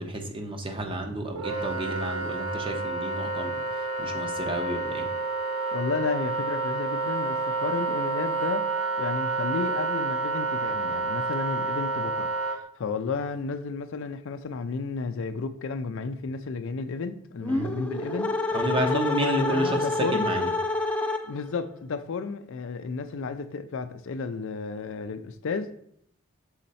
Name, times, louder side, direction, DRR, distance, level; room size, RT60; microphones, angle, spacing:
voice 1, 0.0-5.1 17.5-17.7 18.5-20.5, right 1 dB, 25° right, 0.8 m, -31 dB
Wind instrument woodwind instrument, 1.3-12.6, right 3 dB, 75° right, 0.8 m, -29 dB
voice 2, 5.7-20.3 21.2-25.7, left 4 dB, 65° left, 0.4 m, -32 dB
sound 1, 17.4-21.6, left 2 dB, 5° left, 0.5 m, -28 dB
6.4 x 4.3 x 4.1 m
head